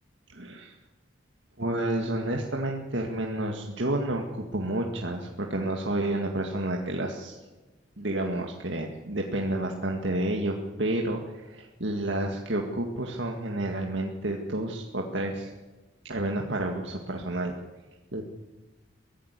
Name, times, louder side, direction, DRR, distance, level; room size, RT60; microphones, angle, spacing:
voice 1, 0.3-0.7 1.6-7.4 8.0-15.5 16.1-17.5 18.1-18.2, right 1 dB, 65° right, 1 dB, 2.1 m, -30 dB
23.5 x 16.5 x 8.4 m, 1.2 s
head